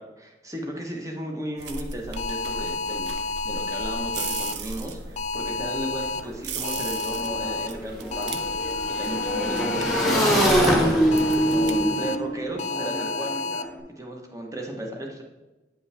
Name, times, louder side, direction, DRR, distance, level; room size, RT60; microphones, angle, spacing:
voice 1, 0.0-8.7 9.0-13.5 13.9-15.2, right 1 dB, 20° right, 1 dB, 1.0 m, -35 dB
sound 1, 1.6-11.9, right 4 dB, 75° right, 0.6 m, -37 dB
sound 2, 2.2-4.5 5.2-6.2 6.6-7.7 8.1-10.5 11.1-12.1 12.6-13.6, left 3 dB, 40° left, 0.4 m, -30 dB
Motorcycle / Engine, 6.2-6.3 6.5-13.7, equal, ahead, 1.2 m, -24 dB
8.9 x 5.2 x 3.4 m, 1.1 s
head